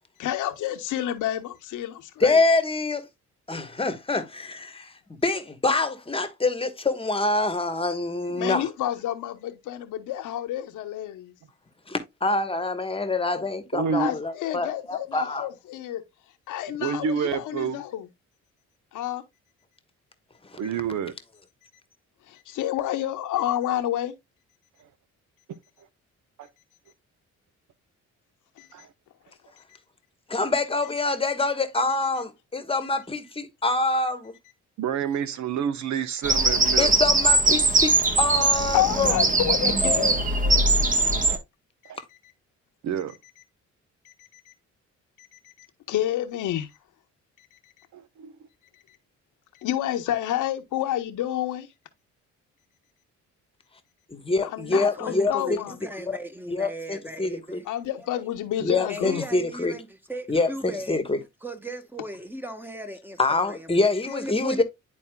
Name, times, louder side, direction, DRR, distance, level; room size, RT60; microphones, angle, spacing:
voice 1, 0.2-2.4 8.3-11.3 13.9-16.0 16.5-18.1 18.9-19.2 22.3-24.1 28.6-28.7 38.7-40.1 41.0-41.1 44.0-44.5 45.2-46.7 49.6-51.7 54.4-55.8 57.7-59.2, left 12 dB, 85° left, 1.0 m, -29 dB
voice 2, 2.2-3.0 3.5-8.7 11.9-15.5 20.5-20.6 30.3-34.3 36.8-39.1 54.1-55.6 56.0-56.2 56.5-57.6 58.6-59.8 60.3-61.2 63.2-64.6, left 3 dB, 20° left, 1.2 m, -25 dB
voice 3, 13.7-14.1 16.8-17.8 20.6-21.1 26.4-26.5 28.7-28.9 34.8-36.9 41.9-42.0 42.8-43.1 47.9-48.3, right 7 dB, 70° right, 0.9 m, -28 dB
Bird vocalization bird call bird song, 36.2-41.4, right 2 dB, 25° right, 1.2 m, -21 dB
voice 4, 54.7-57.7 58.9-61.0 61.4-63.7 64.1-64.6, right 1 dB, 5° right, 1.1 m, -37 dB
10.5 x 4.2 x 2.2 m
cardioid pair, 90°, 30 cm